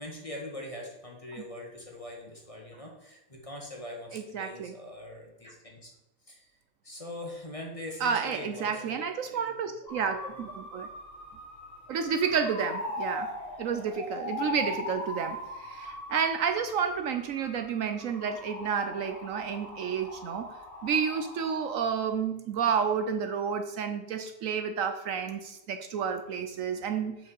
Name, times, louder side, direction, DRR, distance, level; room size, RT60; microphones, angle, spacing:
voice 1, 0.0-5.9 6.2-6.5 6.8-9.4 9.9-10.4 14.6-14.7, left 1 dB, 25° left, 0 dB, 1.5 m, -42 dB
voice 2, 4.1-4.7 8.0-10.9 11.9-13.3 13.6-20.5 20.8-27.2, right 6 dB, 65° right, 8 dB, 1.0 m, -30 dB
sound 1, 9.9-21.7, left 2 dB, 5° right, 3.4 m, -40 dB
6.6 x 5.0 x 7.0 m, 0.96 s
omnidirectional pair, 1.6 m